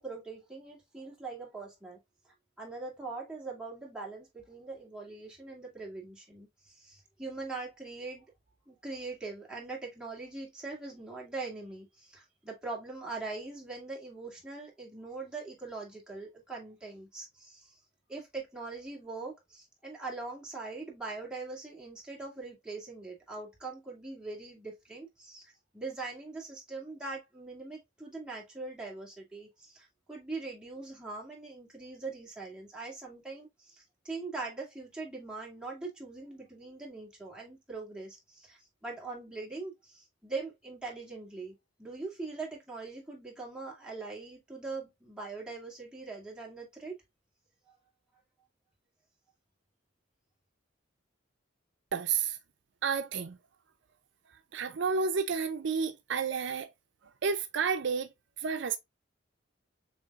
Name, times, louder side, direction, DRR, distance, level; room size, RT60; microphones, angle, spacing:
voice 1, 0.0-2.0 2.2-8.3 8.7-17.8 18.1-47.0, right 3 dB, 5° right, 2.2 m, -42 dB
voice 2, 51.9-52.4 52.8-53.4 54.5-56.7 57.2-58.1 58.4-58.8, right 5 dB, 65° right, 0.5 m, -30 dB
6.9 x 2.8 x 2.4 m
head